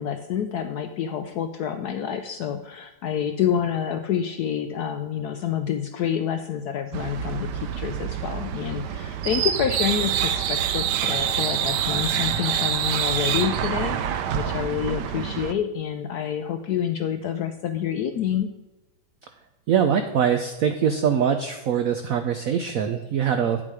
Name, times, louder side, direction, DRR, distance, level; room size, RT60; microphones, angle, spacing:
voice 1, 0.0-18.5, left 8 dB, 75° left, 8 dB, 0.9 m, -28 dB
sound 1, 6.9-15.5, right 9 dB, 70° right, 1.1 m, -26 dB
voice 2, 19.7-23.6, right 8 dB, 85° right, 7 dB, 0.7 m, -23 dB
9.6 x 7.5 x 4.9 m, 1.0 s
omnidirectional pair, 2.2 m